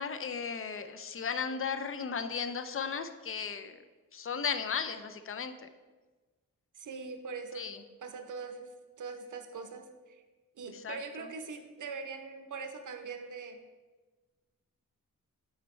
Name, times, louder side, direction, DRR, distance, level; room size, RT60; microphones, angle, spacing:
voice 1, 0.0-3.8 4.1-5.7 7.5-7.8 10.6-11.3, left 6 dB, 40° left, 9 dB, 0.4 m, -36 dB
voice 2, 6.7-7.7 8.0-8.7 9.0-10.2 10.6-13.6, right 5 dB, 60° right, 6 dB, 0.7 m, -42 dB
8.5 x 4.4 x 3.1 m, 1.3 s
wide cardioid pair, 110°, 35 cm